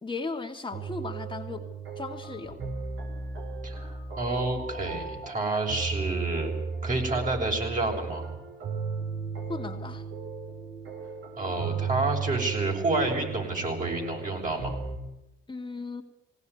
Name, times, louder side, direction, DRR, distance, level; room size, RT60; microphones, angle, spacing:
voice 1, 0.0-1.6 2.0-2.6 9.5-10.0 15.5-16.0, left 3 dB, 25° left, 2 dB, 2.0 m, -36 dB
sound 1, 0.7-15.0, right 5 dB, 75° right, 5.3 m, -35 dB
voice 2, 3.6-6.5 6.8-8.2 11.4-14.7, right 2 dB, 40° right, 1 dB, 6.9 m, -29 dB
19.5 x 18.0 x 9.7 m, 0.86 s
cardioid pair, 90°, 20 cm